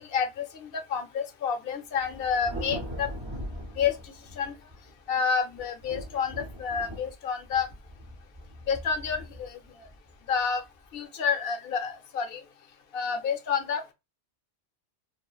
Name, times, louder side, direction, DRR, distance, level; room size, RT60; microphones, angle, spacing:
voice 1, 0.0-3.1 3.8-4.6 5.1-7.7 8.7-9.9 10.3-10.6 10.9-12.4 12.9-13.9, left 6 dB, 60° left, 0.8 m, -29 dB
Thunder, 1.9-5.0 5.5-10.8, equal, 30° right, 0.5 m, -41 dB
2.8 x 2.5 x 2.3 m
omnidirectional pair, 1.2 m